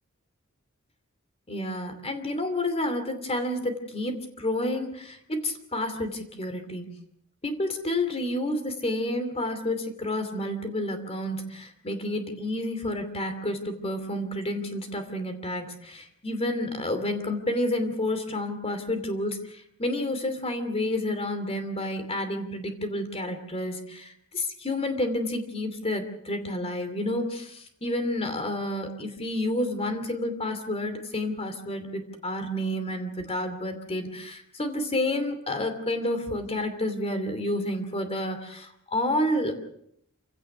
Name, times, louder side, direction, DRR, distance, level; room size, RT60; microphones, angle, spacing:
voice 1, 1.5-6.9 7.4-39.5, left 1 dB, 30° left, 7 dB, 2.7 m, -30 dB
27.5 x 16.5 x 6.1 m, 0.72 s
head